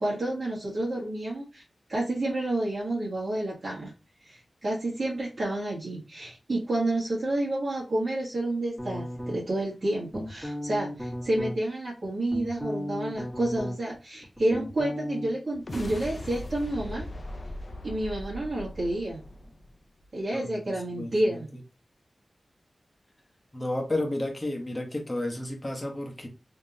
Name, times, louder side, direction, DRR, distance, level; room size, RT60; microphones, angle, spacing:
voice 1, 0.0-1.6 1.9-3.9 4.2-17.1 17.8-19.2 20.1-21.5, right 1 dB, 60° right, -6 dB, 1.4 m, -29 dB
sound 1, 8.8-9.6 10.1-11.6 12.0-14.0 14.2-15.3, equal, 10° right, 1.3 m, -35 dB
sound 2, 15.5-20.1, left 1 dB, 50° left, 0.6 m, -39 dB
voice 2, 20.3-21.4 23.5-26.3, left 1 dB, 20° left, 1 dB, 1.0 m, -32 dB
3.6 x 2.9 x 2.6 m, 0.31 s
wide cardioid pair, 100°, 0 cm